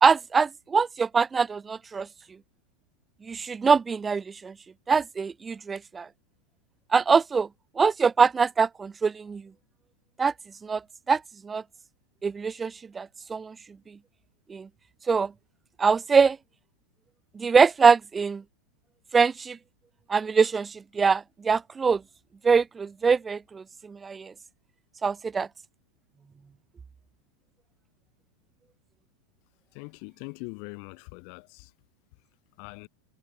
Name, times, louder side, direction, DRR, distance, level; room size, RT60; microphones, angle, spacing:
voice 1, 0.0-2.1 3.2-4.5 4.9-6.1 6.9-7.5 7.8-9.4 10.2-10.3 10.6-10.8 11.1-11.6 12.2-13.5 14.5-14.7 15.1-15.3 15.8-16.4 17.3-18.4 19.1-19.6 20.1-22.0 22.4-24.3 25.0-25.5, right 5 dB, 15° right, 1.2 m, -23 dB
voice 2, 29.7-31.7 32.6-32.9, left 40 dB or more, 45° left, 7.0 m, -42 dB
supercardioid pair, 160°, 0 cm